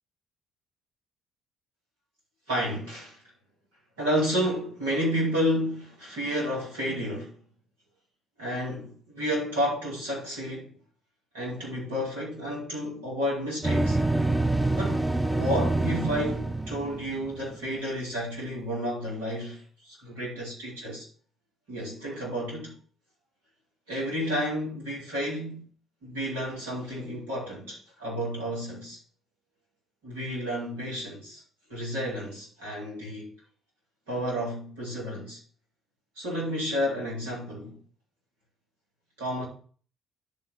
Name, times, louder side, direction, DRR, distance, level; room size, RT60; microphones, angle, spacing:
voice 1, 2.5-3.2 4.0-7.4 8.4-10.7 11.3-14.0 14.7-21.1 21.7-22.7 23.9-25.6 26.0-29.0 30.0-31.4 31.7-33.3 34.1-35.4 36.2-37.8 39.2-39.5, equal, 85° right, 4.7 m, -31 dB
sound 1, 13.6-17.6, right 2 dB, 10° right, 0.8 m, -26 dB
12.0 x 4.0 x 5.1 m
hypercardioid pair, 55°, 0 cm